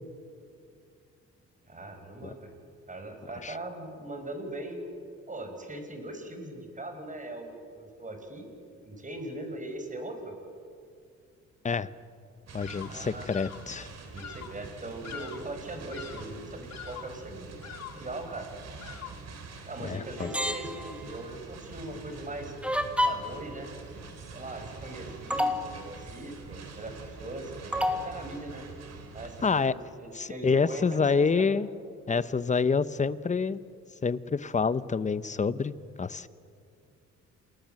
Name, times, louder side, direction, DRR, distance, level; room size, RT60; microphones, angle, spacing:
voice 1, 1.7-2.5 2.9-4.8 5.3-8.5 8.8-10.3 12.8-13.3 14.0-17.5 17.9-18.5 19.7-22.5 23.1-23.7 24.3-28.6 29.1-31.6, right 2 dB, 25° right, 5 dB, 5.2 m, -40 dB
voice 2, 12.5-13.9 19.8-20.3 29.4-29.7 30.1-31.7 32.1-33.6 34.0-35.7 36.0-36.3, left 5 dB, 25° left, 16 dB, 0.8 m, -27 dB
sound 1, 12.5-29.6, right 4 dB, 55° right, 4.0 m, -45 dB
Bird vocalization bird call bird song, 12.6-13.0 13.3-13.7 14.2-14.6 15.0-15.6 15.9-16.4 16.7-17.2 17.6-18.1 18.8-19.3, left 9 dB, 60° left, 1.5 m, -44 dB
sound 2, 20.2-21.2 22.6-23.4 24.8-24.9 25.3-25.7 27.7-28.1, left 1 dB, 5° right, 2.1 m, -28 dB
28.5 x 19.5 x 7.7 m, 2.4 s
cardioid pair, 90°, 30 cm